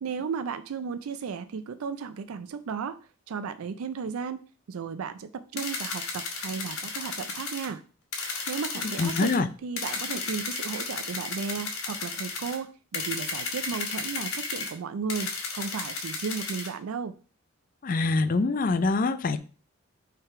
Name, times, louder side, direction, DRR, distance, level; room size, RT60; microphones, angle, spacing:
voice 1, 0.0-7.8 8.5-17.1, right 6 dB, 85° right, 12 dB, 0.4 m, -35 dB
sound 1, 5.6-7.7 8.1-9.4 9.8-12.6 12.9-14.7 15.1-16.7, left 4 dB, 80° left, 1.5 m, -34 dB
voice 2, 9.0-9.5 17.8-19.4, left 3 dB, 40° left, 12 dB, 0.4 m, -24 dB
5.6 x 3.8 x 4.6 m, 0.38 s
head